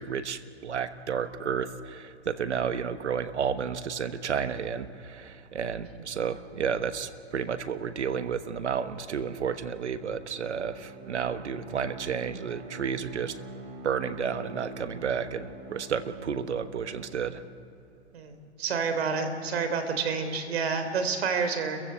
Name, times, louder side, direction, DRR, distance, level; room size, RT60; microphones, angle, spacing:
voice 1, 0.0-13.4 13.8-17.4, right 7 dB, 90° right, 11 dB, 1.3 m, -31 dB
Bowed string instrument, 9.8-17.5, right 1 dB, 30° right, 3.1 m, -45 dB
voice 2, 18.1-21.8, right 5 dB, 65° right, 8 dB, 3.5 m, -29 dB
29.5 x 15.0 x 8.1 m, 2.8 s
hypercardioid pair, 140°, 33 cm